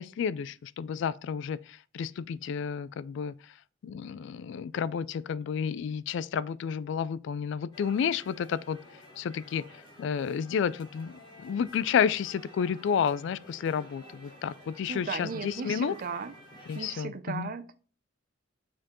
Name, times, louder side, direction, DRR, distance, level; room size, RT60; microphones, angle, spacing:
voice 1, 0.0-3.3 3.8-8.8 9.2-9.6 10.0-15.9 16.7-17.5, left 7 dB, 65° left, 0.3 m, -31 dB
sound 1, 7.7-17.0, equal, 25° left, 2.7 m, -51 dB
voice 2, 14.9-16.3 16.7-17.8, right 5 dB, 50° right, 0.5 m, -36 dB
7.4 x 4.4 x 3.0 m
head